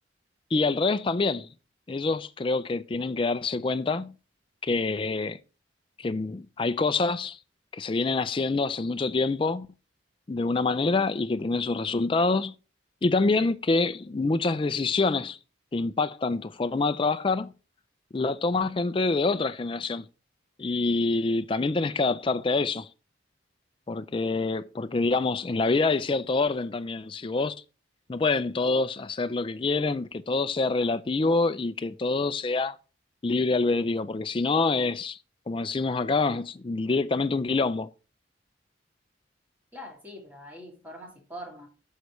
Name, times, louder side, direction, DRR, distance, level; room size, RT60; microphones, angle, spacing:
voice 1, 0.5-1.5 1.9-4.1 4.6-5.4 6.0-7.4 7.7-9.7 10.3-12.5 13.0-15.4 15.7-17.5 18.1-20.1 20.6-22.9 23.9-27.6 28.1-32.8 33.2-35.2 35.5-37.9, left 3 dB, 25° left, 0.4 m, -26 dB
voice 2, 39.7-41.7, equal, 10° right, 2.4 m, -43 dB
9.4 x 6.5 x 3.1 m
head